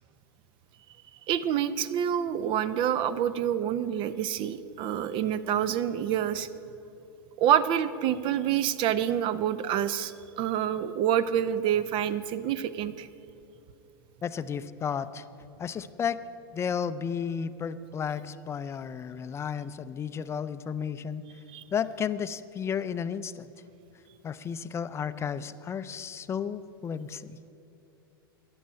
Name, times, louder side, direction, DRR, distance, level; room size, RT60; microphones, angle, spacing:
voice 1, 1.3-6.5 7.4-13.1 21.5-21.6, right 10 dB, 45° right, 15 dB, 0.6 m, -27 dB
voice 2, 14.2-15.3 15.6-16.2 16.5-21.2 21.7-23.5 24.2-27.4, left 7 dB, 20° left, 13 dB, 0.5 m, -33 dB
13.5 x 10.5 x 5.7 m, 2.8 s
hypercardioid pair, 105°, 12 cm